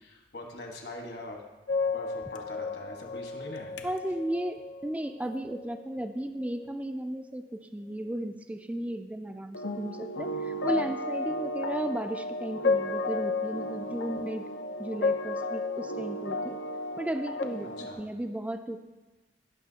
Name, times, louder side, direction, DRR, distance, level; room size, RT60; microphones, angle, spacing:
voice 1, 0.0-1.4 1.8-3.7 17.6-18.0, left 2 dB, 65° left, 1 dB, 1.5 m, -42 dB
sound 1, 1.7-5.9 6.4-6.7 9.5-17.9, left 3 dB, 90° left, 0.6 m, -33 dB
voice 2, 3.8-14.5 14.8-16.6 17.0-17.7 18.0-18.8, right 1 dB, 10° right, 7 dB, 0.3 m, -35 dB
17.0 x 5.9 x 2.8 m, 1.2 s
head